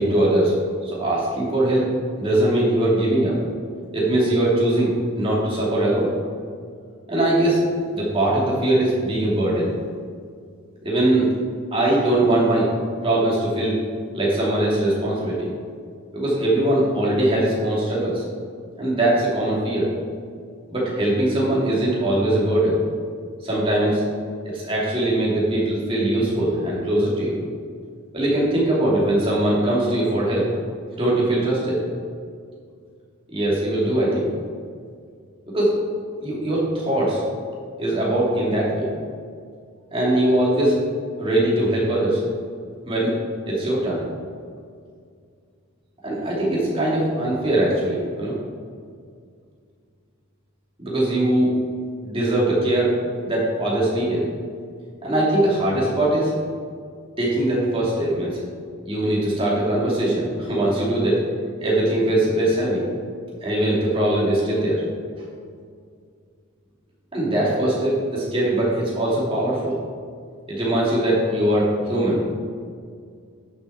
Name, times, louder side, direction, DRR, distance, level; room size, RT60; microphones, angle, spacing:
voice 1, 0.0-1.9 2.2-3.4 3.9-4.9 5.2-6.1 7.1-7.6 7.9-9.7 10.8-11.3 11.7-12.7 13.0-13.8 14.1-15.5 16.1-18.2 18.8-19.9 20.7-22.8 23.4-24.0 24.4-27.4 28.1-30.5 31.0-31.8 33.3-34.3 35.5-35.8 36.2-37.2 37.8-38.9 39.9-40.8 41.2-42.2 42.9-43.1 43.5-44.0 46.0-48.3 50.8-51.5 52.0-52.9 53.2-54.3 55.0-56.3 57.2-58.4 58.9-61.2 61.6-62.8 63.4-64.8 67.1-69.7 70.5-72.2, right 1 dB, 25° right, -6 dB, 2.8 m, -21 dB
10.5 x 7.3 x 4.5 m, 2.2 s
head